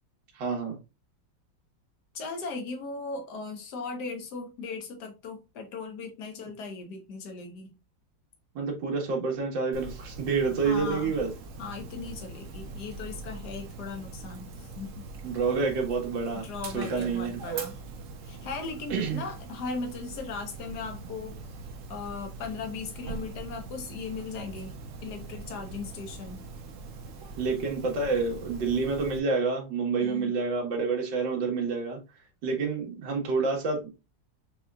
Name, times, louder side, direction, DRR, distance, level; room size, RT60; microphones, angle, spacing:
voice 1, 0.3-0.8 8.6-11.3 15.2-16.4 16.7-17.3 18.9-19.2 27.4-32.0 32.4-33.9, right 4 dB, 75° right, 2.0 m, -28 dB
voice 2, 2.1-7.7 10.6-11.1 11.6-15.0 16.3-17.8 18.2-21.4 21.9-26.4 30.0-30.4, left 4 dB, 60° left, 1.6 m, -38 dB
Dog, 9.7-29.2, right 4 dB, 55° right, 0.9 m, -42 dB
6.4 x 3.1 x 2.3 m
omnidirectional pair, 2.0 m